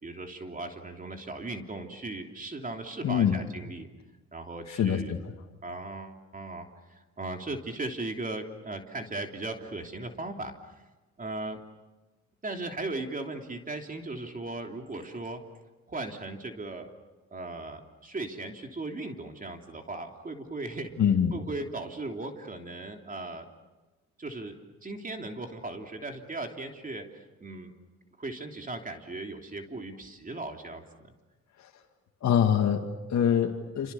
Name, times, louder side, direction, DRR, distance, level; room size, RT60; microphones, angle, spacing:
voice 1, 0.0-3.9 4.3-5.1 5.6-10.5 11.2-11.6 12.4-15.4 15.9-16.9 17.3-20.9 21.3-23.5 24.2-24.6 24.8-27.7 28.2-31.1, right 2 dB, 25° right, 4 dB, 3.2 m, -37 dB
voice 2, 3.0-3.4 4.7-5.2 21.0-21.3 31.6-31.7 32.2-33.9, left 8 dB, 65° left, 1 dB, 2.3 m, -25 dB
29.0 x 27.0 x 7.0 m, 1.1 s
cardioid pair, 90°, 30 cm